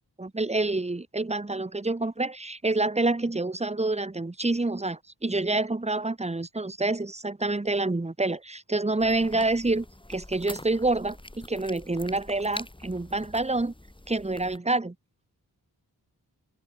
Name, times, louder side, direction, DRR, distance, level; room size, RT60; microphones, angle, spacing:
voice 1, 0.2-13.7 14.1-14.9, right 2 dB, 15° right, 1.2 m, -27 dB
sound 1, 9.0-14.6, left 1 dB, 10° left, 2.3 m, -44 dB
cardioid pair, 50°, 39 cm